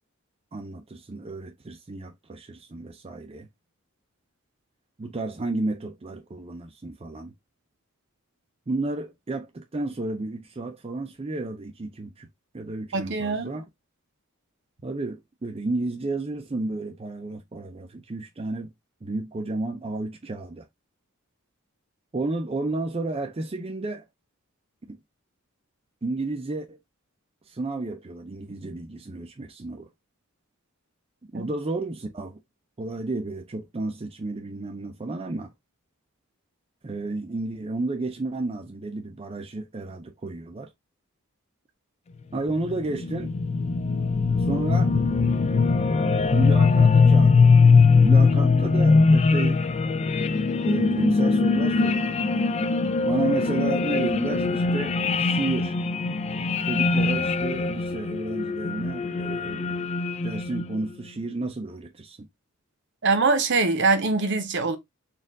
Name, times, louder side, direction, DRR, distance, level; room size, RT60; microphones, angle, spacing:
voice 1, 0.5-3.5 5.0-7.3 8.7-12.3 12.5-13.6 14.8-18.7 19.0-20.7 22.1-24.1 24.9-25.0 26.0-26.8 27.5-29.9 31.3-32.4 32.8-35.5 36.8-40.7 42.3-43.4 44.4-44.9 46.3-47.6 48.0-49.6 50.6-52.2 53.0-55.8 56.6-59.9 60.2-62.3, right 2 dB, 25° right, 0.5 m, -32 dB
voice 2, 12.9-13.5 31.3-31.4 63.0-64.8, right 3 dB, 55° right, 0.8 m, -23 dB
sound 1, 42.5-60.9, left 4 dB, 30° left, 0.3 m, -21 dB
4.3 x 2.5 x 3.5 m
head